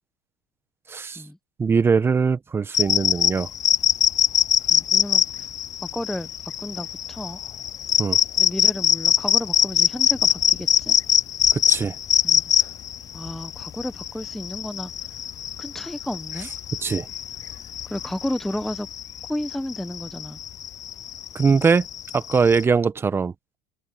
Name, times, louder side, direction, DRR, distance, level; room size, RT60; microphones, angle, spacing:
voice 1, 0.9-1.2 1.6-3.5 8.0-8.2 11.5-11.9 16.8-17.1 21.3-21.9 22.1-23.6, right 5 dB, 20° right, 1.4 m, -21 dB
sound 1, 2.7-22.6, left 10 dB, 30° left, 0.4 m, -23 dB
voice 2, 4.7-5.5 5.8-7.4 8.4-11.0 12.2-12.4 13.1-14.9 15.6-16.5 17.8-18.9 19.3-20.4 21.5-21.7, left 1 dB, 5° left, 1.1 m, -32 dB
open air
supercardioid pair, 105°, 11 cm